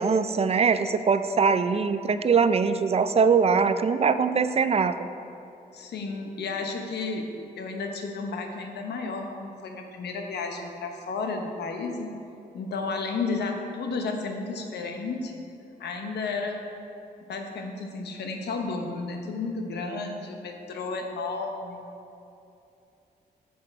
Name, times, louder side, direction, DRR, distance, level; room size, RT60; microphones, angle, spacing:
voice 1, 0.0-5.0, right 5 dB, 40° right, 11 dB, 0.4 m, -22 dB
voice 2, 5.7-7.3 7.6-12.2 12.5-15.3 15.8-16.6 17.3-21.8, left 4 dB, 85° left, 3 dB, 0.9 m, -32 dB
7.5 x 7.0 x 4.5 m, 2.7 s
cardioid pair, 75°, 17 cm